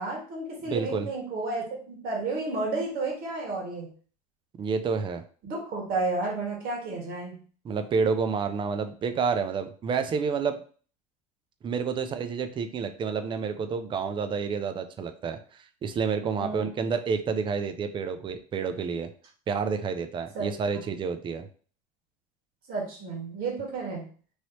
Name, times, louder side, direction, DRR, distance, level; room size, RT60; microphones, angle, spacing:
voice 1, 0.0-3.9 5.4-7.3 16.2-16.8 20.3-20.6 22.7-24.0, right 3 dB, 60° right, -2 dB, 1.6 m, -32 dB
voice 2, 0.7-1.1 4.6-5.2 7.6-10.6 11.6-19.1 19.5-21.5, right 5 dB, 30° right, 8 dB, 0.4 m, -29 dB
3.1 x 2.9 x 2.8 m, 0.42 s
supercardioid pair, 105°, 17 cm